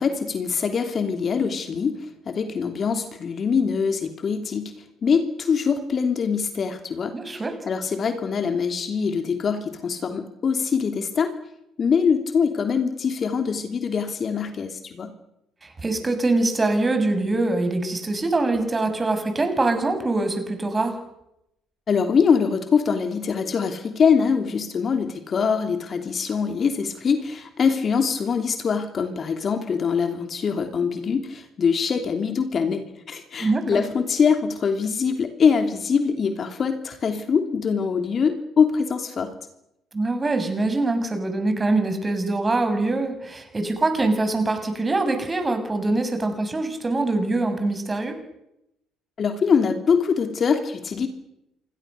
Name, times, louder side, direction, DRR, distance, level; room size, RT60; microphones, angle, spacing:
voice 1, 0.0-11.3 11.8-15.1 21.9-39.3 49.2-51.1, left 6 dB, 40° left, 7 dB, 3.0 m, -23 dB
voice 2, 7.1-7.5 15.6-21.0 33.4-33.8 39.9-48.1, right 2 dB, 25° right, 7 dB, 6.9 m, -23 dB
27.5 x 24.0 x 6.8 m, 0.84 s
figure-of-eight pair, 55°, 0 cm